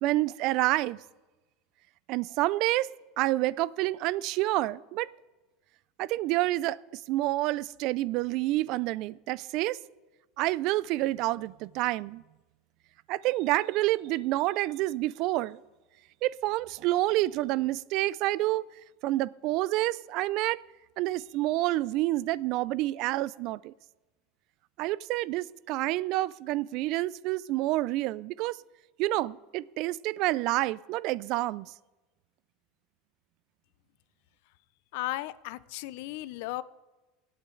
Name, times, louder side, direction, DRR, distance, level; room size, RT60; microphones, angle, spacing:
voice 1, 0.0-1.0 2.1-2.9 3.2-5.1 6.0-9.8 10.4-12.2 13.1-15.6 16.2-18.6 19.0-20.6 21.0-23.7 24.8-28.6 29.0-31.7, right 17 dB, 50° right, 0.3 m, -28 dB
voice 2, 34.9-36.6, left 17 dB, 65° left, 0.5 m, -35 dB
23.5 x 8.7 x 3.8 m
supercardioid pair, 160°, 0 cm